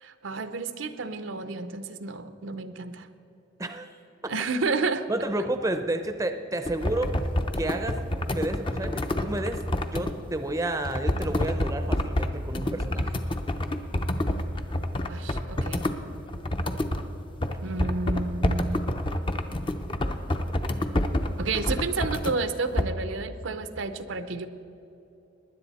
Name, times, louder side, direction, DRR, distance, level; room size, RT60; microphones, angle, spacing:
voice 1, 0.0-3.1 4.3-5.1 15.0-15.8 17.6-18.9 21.4-24.5, right 3 dB, 80° right, 10 dB, 0.7 m, -31 dB
voice 2, 5.1-7.1 7.6-8.0 8.3-9.6 9.9-13.1, right 1 dB, 15° right, 8 dB, 0.6 m, -30 dB
sound 1, 6.7-10.1 10.8-17.0 17.4-22.3 22.7-22.8, left 1 dB, 25° left, 0.6 m, -28 dB
19.0 x 10.5 x 4.2 m, 2.9 s
head